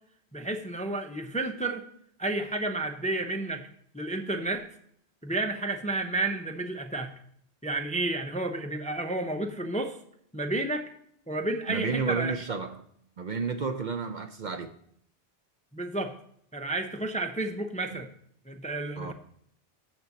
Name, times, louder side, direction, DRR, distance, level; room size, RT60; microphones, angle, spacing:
voice 1, 0.3-1.8 2.2-3.7 3.9-4.7 5.2-7.1 7.6-10.0 10.3-10.9 11.3-12.3 15.7-16.1 16.5-18.1 18.5-19.1, right 2 dB, 10° left, 0.5 m, -31 dB
voice 2, 11.7-12.8 13.2-14.7 17.9-18.0 19.0-19.1, right 5 dB, 55° right, 0.7 m, -31 dB
6.8 x 6.2 x 7.1 m
omnidirectional pair, 1.1 m